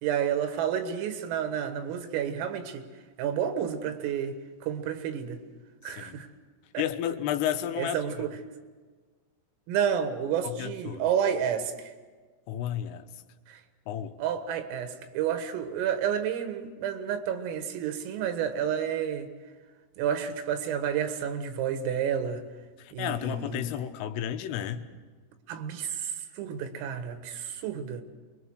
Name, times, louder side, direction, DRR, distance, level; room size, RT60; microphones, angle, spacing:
voice 1, 0.0-2.9 3.2-5.4 5.8-6.3 6.7-6.8 7.8-8.3 9.7-11.9 13.5-13.6 14.2-19.3 20.0-22.4 22.9-23.8 25.5-28.0, right 8 dB, 85° right, 4.2 m, -30 dB
voice 2, 5.9-6.2 6.8-8.0 10.4-11.1 12.5-13.1 13.9-14.2 22.8-24.8, left 10 dB, 80° left, 3.6 m, -32 dB
26.0 x 22.5 x 6.4 m
omnidirectional pair, 5.8 m